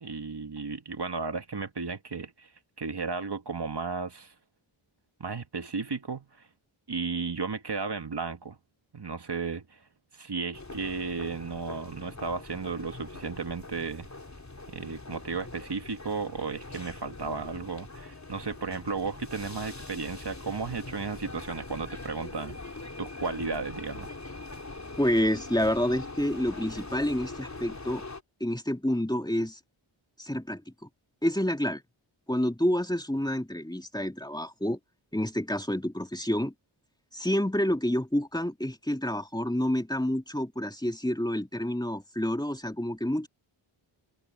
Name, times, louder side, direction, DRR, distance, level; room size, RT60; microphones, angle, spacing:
voice 1, 0.0-2.5 2.8-4.3 5.2-6.5 6.9-8.6 8.9-9.8 10.1-14.1 14.7-22.6 23.0-24.1, right 4 dB, 50° right, 1.9 m, -34 dB
sound 1, 10.5-28.2, left 3 dB, 35° left, 3.6 m, -42 dB
voice 2, 25.0-28.0 28.4-29.6 30.2-30.9 31.2-31.8 32.3-34.8 35.1-36.5 37.1-43.3, equal, 10° left, 2.9 m, -28 dB
open air
wide cardioid pair, 65°, 50 cm